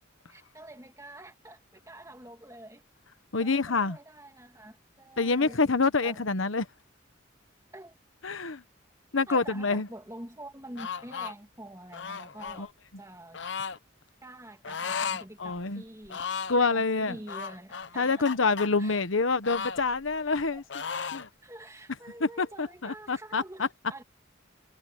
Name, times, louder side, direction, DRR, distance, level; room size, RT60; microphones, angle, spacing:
voice 1, 0.3-2.9 3.4-5.6 6.0-6.2 7.7-8.0 9.3-12.7 13.0-13.4 14.2-16.3 16.7-18.5 18.8-19.0 20.2-20.7 20.9-21.1 21.4-24.0, right 1 dB, 15° right, 2.8 m, -47 dB
voice 2, 3.3-4.0 5.2-6.7 8.2-8.6 9.1-9.9 12.6-12.7 15.4-15.8 16.5-17.2 18.0-20.6 21.1-21.3 22.2-23.7, left 4 dB, 85° left, 1.2 m, -26 dB
sound 1, 10.8-11.3 11.9-12.6 13.3-13.8 14.6-15.3 15.6-15.7 16.1-16.6 17.3-18.7 19.4-20.4 20.7-21.3, left 6 dB, 65° left, 0.8 m, -35 dB
head